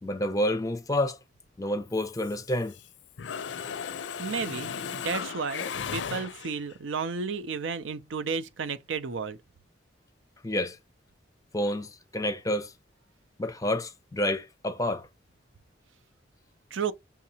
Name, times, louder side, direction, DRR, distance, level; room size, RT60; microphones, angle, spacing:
voice 1, 0.0-1.2 1.6-2.7 10.4-10.8 11.5-12.7 13.4-15.1, left 1 dB, 20° left, 0.5 m, -29 dB
Mechanisms, 1.9-2.9 3.2-6.7, left 7 dB, 70° left, 0.4 m, -36 dB
voice 2, 4.2-5.6 5.9-9.4 16.7-16.9, right 5 dB, 85° right, 0.5 m, -32 dB
5.7 x 2.8 x 2.8 m
head